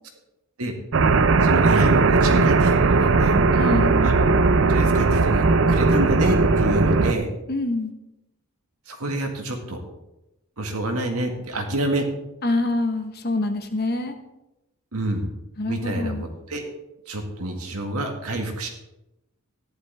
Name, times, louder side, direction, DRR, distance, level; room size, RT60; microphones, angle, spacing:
sound 1, 0.9-7.1, right 3 dB, 55° right, 0.5 m, -18 dB
voice 1, 1.4-3.4 4.0-4.1 4.7-7.3 8.9-9.8 10.6-12.1 14.9-15.3 15.7-16.6 17.1-18.7, right 1 dB, 85° right, 3 dB, 1.9 m, -27 dB
voice 2, 3.5-4.0 7.5-7.9 12.4-14.2 15.6-16.3, left 2 dB, 45° left, 6 dB, 1.1 m, -25 dB
14.0 x 11.0 x 3.4 m, 0.94 s
head